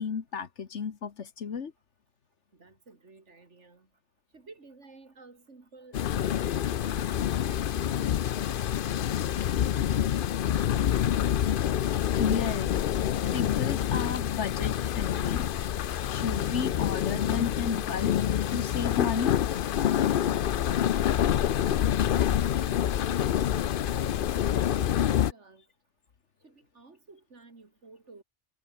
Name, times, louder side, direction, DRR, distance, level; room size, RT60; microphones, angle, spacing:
voice 1, 0.0-1.7 12.2-12.7 13.3-15.5 16.1-18.1 18.5-19.4, left 6 dB, 85° left, 1.7 m, -32 dB
voice 2, 2.5-3.9 4.3-6.6 6.8-10.1 22.9-25.6 26.4-28.2, right 3 dB, 85° right, 3.2 m, -54 dB
sound 1, 5.9-25.3, left 10 dB, 55° left, 0.7 m, -27 dB
omnidirectional pair, 1.2 m